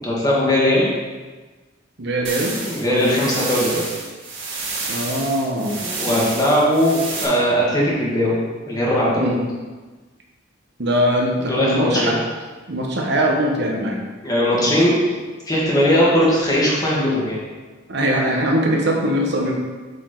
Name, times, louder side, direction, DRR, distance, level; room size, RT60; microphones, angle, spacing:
voice 1, 0.0-0.9 2.6-3.8 5.6-9.4 11.5-12.2 14.2-15.2 15.5-17.4, equal, 20° left, -6 dB, 2.0 m, -19 dB
voice 2, 2.0-2.5 2.9-3.3 4.9-5.7 6.1-6.3 9.2-9.4 10.8-12.2 12.7-14.0 14.5-14.9 17.0-17.1 17.9-19.5, equal, 60° right, 0 dB, 1.1 m, -22 dB
sound 1, 2.2-7.2, right 3 dB, 85° right, 1.7 m, -29 dB
8.2 x 5.0 x 4.0 m, 1.3 s
head